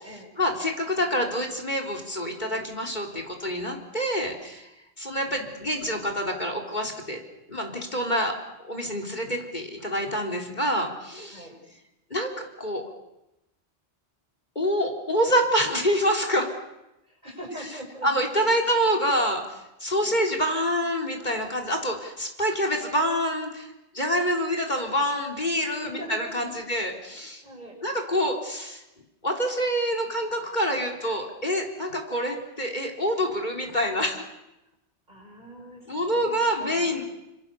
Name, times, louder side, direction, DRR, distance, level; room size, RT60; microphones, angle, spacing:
voice 1, 0.4-4.7 5.0-7.2 7.5-8.4 8.6-11.5 12.1-12.8 14.6-16.5 18.0-27.4 27.8-28.8 29.2-34.2 35.9-37.0, equal, 45° left, 4 dB, 3.9 m, -26 dB
voice 2, 17.1-18.3 18.8-18.9 20.0-20.2 25.7-26.5 27.4-27.8 35.1-37.0, right 1 dB, 40° right, 1 dB, 7.6 m, -42 dB
30.0 x 26.5 x 7.0 m, 0.92 s
omnidirectional pair, 1.1 m